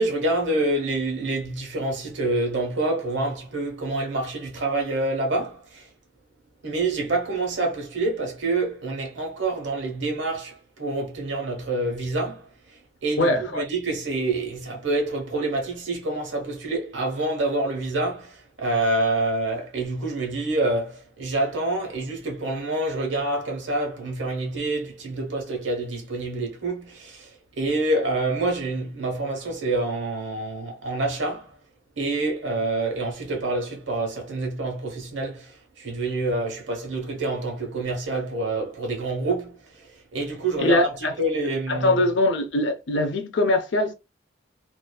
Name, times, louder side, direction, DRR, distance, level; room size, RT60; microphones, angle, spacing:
voice 1, 0.0-5.9 6.6-31.6 32.0-40.9 41.2-42.1, right 2 dB, 85° right, 1.0 m, -27 dB
voice 2, 13.2-13.7 40.6-41.1 41.7-43.9, left 2 dB, 80° left, 0.5 m, -22 dB
2.5 x 2.4 x 2.2 m
head